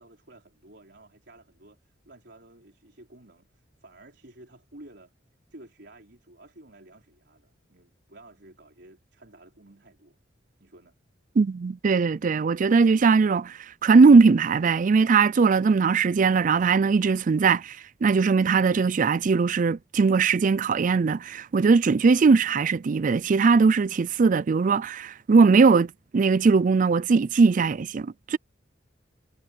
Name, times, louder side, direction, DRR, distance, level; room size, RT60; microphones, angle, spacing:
voice 1, 0.0-5.1 5.5-10.2 10.6-10.9, right 1 dB, 65° right, 4.7 m, -52 dB
voice 2, 11.4-28.4, right 4 dB, 45° right, 0.4 m, -20 dB
head